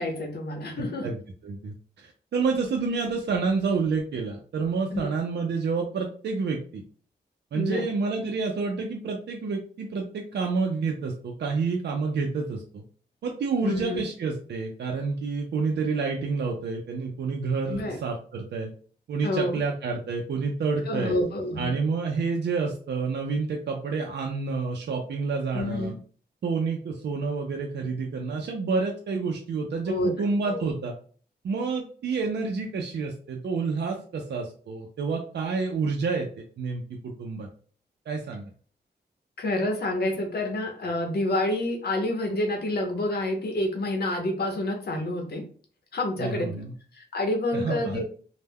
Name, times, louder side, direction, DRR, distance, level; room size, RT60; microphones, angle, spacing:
voice 1, 0.0-1.1 4.9-5.1 7.5-7.9 13.6-14.0 17.7-18.0 19.2-19.6 20.9-21.7 25.5-26.0 29.9-30.7 39.4-45.4 45.9-46.6 46.9-48.1, left 1 dB, 65° left, 3 dB, 0.7 m, -28 dB
voice 2, 0.8-6.8 7.5-12.8 13.2-18.7 19.1-21.2 21.6-26.0 26.4-31.0 31.4-37.5 38.1-38.5 46.2-46.7 47.5-48.1, right 4 dB, 80° right, 1 dB, 0.4 m, -29 dB
2.1 x 2.1 x 3.3 m, 0.43 s
cardioid pair, 70°, 18 cm